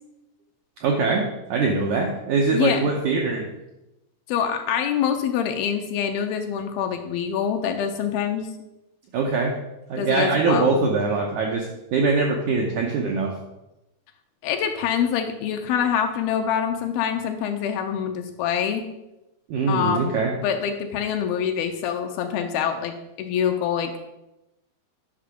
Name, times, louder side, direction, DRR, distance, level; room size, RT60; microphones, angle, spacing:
voice 1, 0.8-3.5 9.1-9.6 9.9-11.7 11.9-13.4 19.5-20.3, right 4 dB, 80° right, 0 dB, 1.7 m, -22 dB
voice 2, 2.5-2.9 4.3-8.5 10.0-10.7 14.4-18.9 19.7-20.1 20.4-24.0, left 8 dB, 80° left, 5 dB, 2.5 m, -25 dB
10.5 x 6.0 x 5.1 m, 0.94 s
omnidirectional pair, 4.7 m